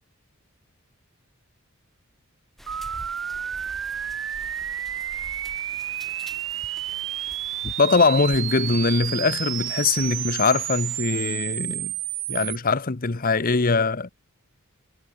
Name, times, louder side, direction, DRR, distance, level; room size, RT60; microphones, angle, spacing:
sound 1, 2.6-11.0, equal, ahead, 8.0 m, -47 dB
sound 2, 2.7-12.6, right 12 dB, 60° right, 1.7 m, -31 dB
voice 1, 7.6-11.9 12.3-14.1, left 4 dB, 40° left, 0.9 m, -22 dB
head